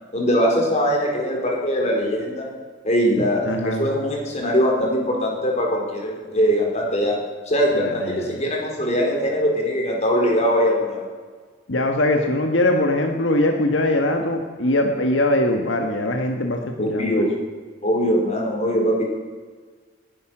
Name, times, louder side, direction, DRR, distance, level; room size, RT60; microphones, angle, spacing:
voice 1, 0.1-2.5 2.8-7.2 7.5-11.0 16.8-17.4 17.8-19.0, equal, 40° left, -1 dB, 4.1 m, -21 dB
voice 2, 3.4-3.8 7.8-8.4 11.7-17.2, left 1 dB, 80° left, 3 dB, 1.4 m, -22 dB
19.5 x 11.0 x 6.1 m, 1.5 s
head